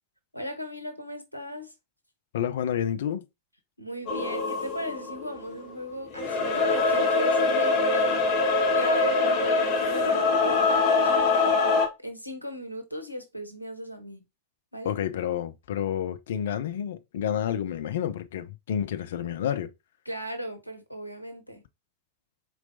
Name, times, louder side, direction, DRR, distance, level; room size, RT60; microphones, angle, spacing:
voice 1, 0.3-1.7 3.8-8.3 8.7-14.2 14.7-15.0 20.0-21.6, equal, 90° left, 0.8 m, -37 dB
voice 2, 2.3-3.2 14.8-19.7, left 9 dB, 60° left, 0.5 m, -29 dB
sound 1, 4.1-5.7 6.1-11.9, left 3 dB, 35° left, 1.3 m, -24 dB
4.5 x 3.9 x 2.6 m
figure-of-eight pair, 90°, 0 cm